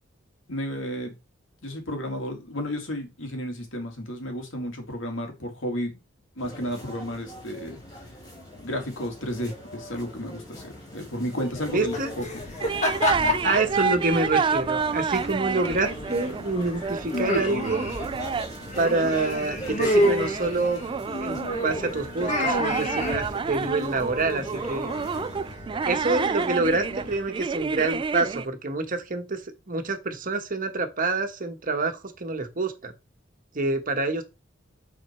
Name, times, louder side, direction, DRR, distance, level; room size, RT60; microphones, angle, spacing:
voice 1, 0.5-1.1 1.6-6.0 6.4-7.8 8.6-12.4 13.1-13.6, equal, 80° left, 2.4 m, -33 dB
sound 1, 6.4-25.5, left 1 dB, 20° left, 3.9 m, -42 dB
sound 2, 11.5-27.1, left 1 dB, 35° left, 1.9 m, -31 dB
voice 2, 11.7-12.1 13.4-17.9 18.8-20.8 21.2-24.9 25.9-29.4 29.7-32.9 33.5-34.2, right 3 dB, 45° right, 1.3 m, -27 dB
sound 3, 12.6-28.5, right 5 dB, 25° right, 0.3 m, -30 dB
9.0 x 4.3 x 4.4 m
head